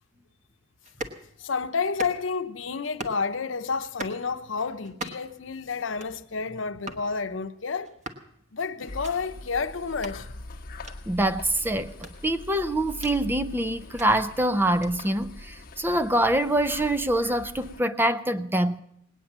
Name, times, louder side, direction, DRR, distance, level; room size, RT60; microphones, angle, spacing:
sound 1, 0.8-1.2 1.8-2.4 2.8-3.2 3.8-4.2 4.8-5.4 5.8-6.2 6.8-7.1 7.8-8.3 8.8-9.1 9.9-10.2 10.8-11.0 11.9-13.2 13.8-14.1 14.8-14.9, right 1 dB, 40° right, 1.3 m, -39 dB
voice 1, 1.4-7.9 8.5-10.3, left 5 dB, 90° left, 0.8 m, -30 dB
sound 2, 8.9-17.8, left 2 dB, 50° left, 1.0 m, -42 dB
voice 2, 11.1-11.9 12.2-18.8, right 1 dB, 10° right, 0.5 m, -25 dB
19.0 x 9.2 x 7.3 m
head